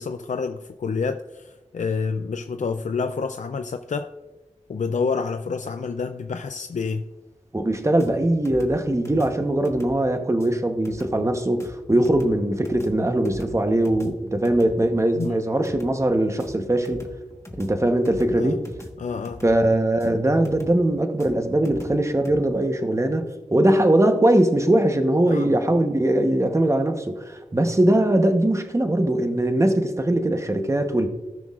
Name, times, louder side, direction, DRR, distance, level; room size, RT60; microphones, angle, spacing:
voice 1, 0.0-4.1 4.7-7.0 15.2-15.4 18.4-18.6 19.0-19.4 25.3-25.5, left 5 dB, 75° left, 0.4 m, -28 dB
voice 2, 7.5-17.1 17.6-18.6 19.4-23.2 23.5-31.1, right 1 dB, 25° right, 1.0 m, -21 dB
sound 1, 8.0-22.4, left 1 dB, 20° left, 1.3 m, -43 dB
18.0 x 6.2 x 2.4 m
wide cardioid pair, 70°, 13 cm